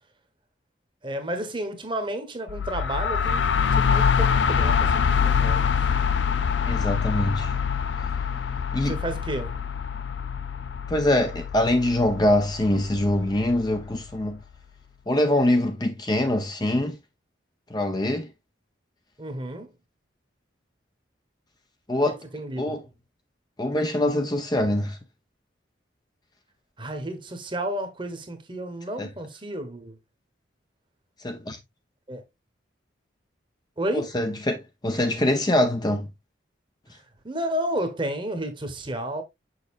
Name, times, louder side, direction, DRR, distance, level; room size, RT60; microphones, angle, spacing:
voice 1, 1.0-3.4 3.7-5.8 8.9-9.5 19.2-19.7 22.0-22.8 26.8-30.0 32.1-32.2 33.8-34.1 36.9-39.2, right 1 dB, 25° right, 1.1 m, -32 dB
sound 1, 2.5-14.1, left 6 dB, 70° left, 0.5 m, -25 dB
voice 2, 6.7-7.5 8.7-8.9 10.9-14.4 15.1-17.0 17.7-18.3 21.9-22.1 22.6-22.8 23.6-25.0 29.0-29.1 31.2-31.6 33.9-36.1, left 1 dB, 20° left, 0.7 m, -24 dB
6.6 x 6.4 x 2.4 m
head